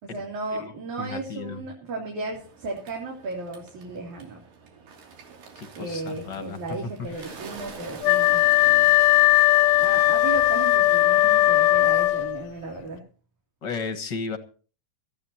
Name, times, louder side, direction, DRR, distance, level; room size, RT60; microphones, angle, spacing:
voice 1, 0.0-4.4 5.7-8.9 9.8-13.0, right 3 dB, 65° right, -2 dB, 4.4 m, -35 dB
voice 2, 1.0-1.6 5.6-6.6 13.6-14.4, left 4 dB, 50° left, 8 dB, 1.5 m, -34 dB
Bird, 2.3-11.8, right 4 dB, 85° right, 4.5 m, -46 dB
Wind instrument woodwind instrument, 8.0-12.5, left 16 dB, 70° left, 1.8 m, -18 dB
22.0 x 14.5 x 2.9 m, 0.38 s
omnidirectional pair, 3.8 m